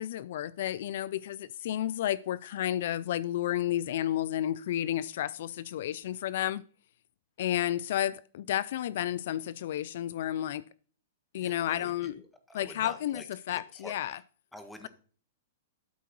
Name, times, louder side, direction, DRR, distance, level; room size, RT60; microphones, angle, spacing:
voice 1, 0.0-6.6 7.4-10.6 11.3-12.2 12.5-14.2, left 12 dB, 65° left, 0.4 m, -31 dB
voice 2, 11.4-14.2 14.5-14.9, left 1 dB, 5° left, 1.6 m, -48 dB
12.5 x 4.6 x 6.0 m
hypercardioid pair, 140°, 0 cm